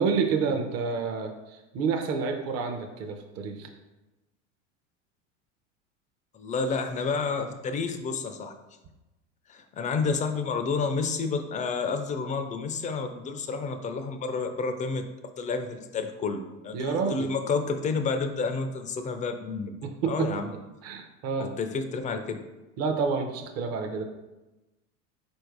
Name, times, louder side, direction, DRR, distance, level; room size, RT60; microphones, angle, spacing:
voice 1, 0.0-3.7 16.7-17.3 19.8-20.3 20.8-21.5 22.8-24.0, right 5 dB, 40° right, 4 dB, 0.6 m, -29 dB
voice 2, 6.3-8.6 9.5-19.7 20.0-20.5 21.4-22.4, left 4 dB, 20° left, 7 dB, 0.3 m, -30 dB
4.4 x 2.7 x 4.6 m, 1.0 s
hypercardioid pair, 90°, 37 cm